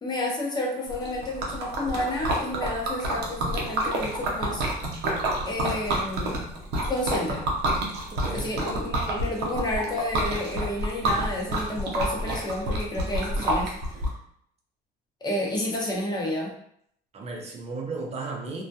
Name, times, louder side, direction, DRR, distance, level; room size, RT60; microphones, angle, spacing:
voice 1, 0.0-4.6 5.5-6.4 6.9-7.4 8.3-13.7 15.2-16.5, left 1 dB, 25° left, -2 dB, 0.7 m, -30 dB
Liquid, 0.9-14.1, right 1 dB, 85° right, 0.6 m, -28 dB
voice 2, 8.1-8.6 17.1-18.6, right 3 dB, 40° right, 1 dB, 0.6 m, -35 dB
2.2 x 2.1 x 2.7 m, 0.69 s
cardioid pair, 110°, 17 cm